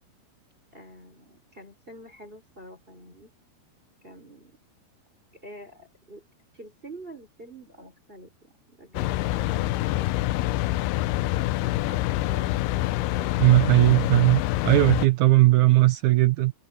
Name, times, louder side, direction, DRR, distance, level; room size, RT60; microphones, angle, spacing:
voice 1, 0.7-3.3 4.0-4.5 5.3-6.2 6.5-10.1 10.8-13.9, right 1 dB, 15° right, 4.9 m, -47 dB
sound 1, 9.0-15.1, left 17 dB, 90° left, 2.6 m, -26 dB
voice 2, 13.4-16.5, right 18 dB, 90° right, 1.7 m, -18 dB
omnidirectional pair, 4.5 m